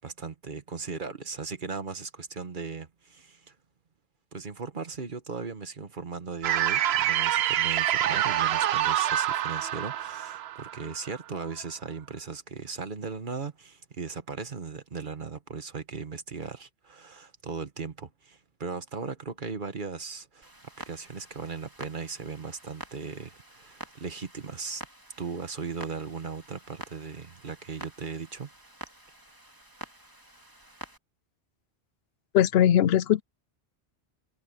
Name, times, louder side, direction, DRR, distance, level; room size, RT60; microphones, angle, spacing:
voice 1, 0.0-3.5 4.3-20.5 20.9-24.9 25.2-28.5, right 5 dB, 50° right, 1.4 m, -37 dB
sound 1, 6.4-11.5, right 12 dB, 75° right, 0.8 m, -26 dB
Clock, 20.4-31.0, right 1 dB, 20° right, 2.8 m, -48 dB
voice 2, 32.3-33.2, left 10 dB, 75° left, 0.8 m, -20 dB
omnidirectional pair, 1.1 m